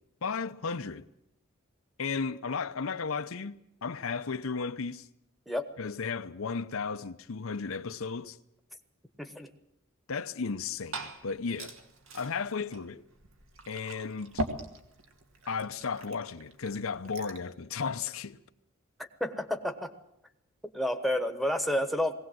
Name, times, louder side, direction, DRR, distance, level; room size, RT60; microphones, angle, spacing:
voice 1, 0.2-1.1 2.0-5.1 5.8-8.4 10.1-11.8 12.1-13.0 13.7-14.4 15.5-18.4, left 5 dB, 80° left, 0.7 m, -34 dB
voice 2, 9.2-9.5 19.0-19.9 20.7-22.1, left 1 dB, ahead, 1.2 m, -30 dB
Glass / Fill (with liquid), 10.4-17.5, right 1 dB, 70° right, 2.1 m, -42 dB
20.0 x 17.5 x 7.7 m
head